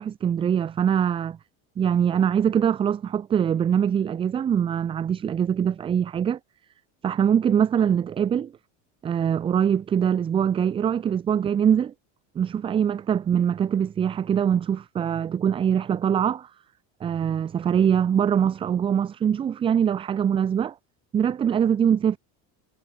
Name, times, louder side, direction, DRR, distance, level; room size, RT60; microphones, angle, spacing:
voice 1, 0.0-1.4 1.8-6.4 7.0-8.5 9.0-11.9 12.4-16.5 17.0-20.7 21.1-22.2, right 8 dB, 15° right, 0.4 m, -23 dB
cardioid pair, 165°, 35 cm